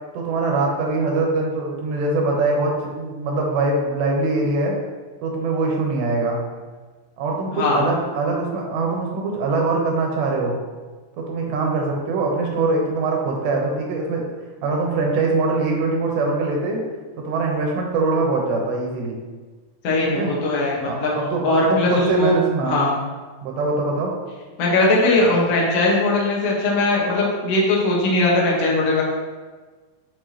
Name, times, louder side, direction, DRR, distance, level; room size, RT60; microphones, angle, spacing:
voice 1, 0.1-4.8 5.2-6.4 7.2-10.5 11.2-14.2 14.6-16.8 17.3-19.2 20.1-20.3 20.9-22.8 23.4-24.1, right 3 dB, 80° right, 0 dB, 3.2 m, -22 dB
voice 2, 7.5-7.8 19.8-21.1 21.4-22.4 22.6-22.9 24.6-29.0, left 2 dB, 70° left, -4 dB, 1.5 m, -19 dB
7.0 x 6.9 x 3.0 m, 1.4 s
omnidirectional pair, 5.0 m